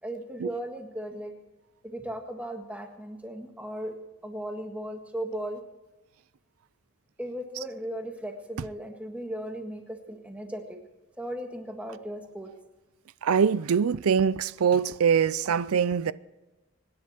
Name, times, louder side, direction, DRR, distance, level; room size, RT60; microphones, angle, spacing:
voice 1, 0.0-1.3 1.8-3.9 4.2-5.6 7.2-10.8 11.2-12.5, right 1 dB, 5° right, 1.6 m, -36 dB
voice 2, 13.2-16.1, right 7 dB, 85° right, 0.4 m, -23 dB
24.5 x 10.5 x 4.4 m
head